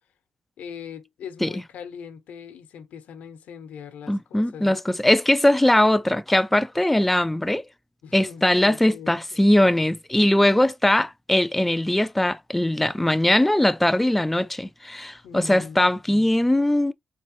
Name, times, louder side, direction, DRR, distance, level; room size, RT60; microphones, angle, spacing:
voice 1, 0.6-4.8 8.0-9.4 15.2-16.3, left 7 dB, 70° left, 1.0 m, -41 dB
voice 2, 4.1-7.6 8.1-16.9, left 1 dB, 5° left, 0.3 m, -20 dB
4.4 x 3.0 x 3.0 m
cardioid pair, 160°, 3 cm